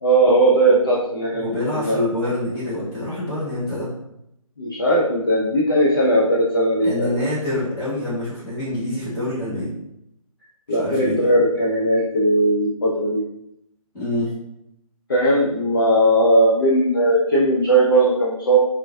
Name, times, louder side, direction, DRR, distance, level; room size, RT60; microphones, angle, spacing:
voice 1, 0.0-1.4 1.7-2.0 4.6-7.1 10.7-13.2 15.1-18.6, right 1 dB, 35° left, -6 dB, 0.4 m, -18 dB
voice 2, 1.3-3.9 6.8-9.7 10.7-11.3 13.9-14.3, left 1 dB, 10° left, -12 dB, 1.1 m, -26 dB
3.6 x 2.4 x 2.2 m, 0.82 s
figure-of-eight pair, 145°, 18 cm